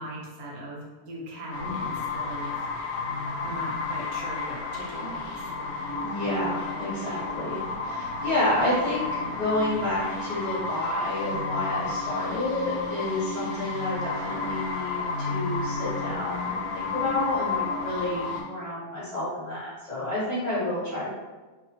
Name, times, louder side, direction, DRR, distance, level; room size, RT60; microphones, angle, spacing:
voice 1, 0.0-2.5 3.4-5.4, equal, 75° right, -3 dB, 1.1 m, -38 dB
sound 1, 1.5-18.4, left 4 dB, 70° left, 0.9 m, -32 dB
voice 2, 6.0-21.1, left 1 dB, 30° left, -11 dB, 0.9 m, -30 dB
2.8 x 2.1 x 2.8 m, 1.2 s
omnidirectional pair, 1.6 m